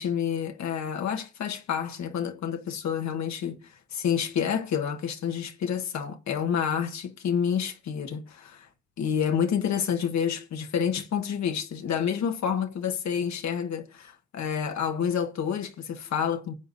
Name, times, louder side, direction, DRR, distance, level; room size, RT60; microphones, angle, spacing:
voice 1, 0.0-8.7 9.0-16.5, left 8 dB, 65° left, 1.4 m, -29 dB
18.0 x 7.9 x 2.6 m
cardioid pair, 90°, 30 cm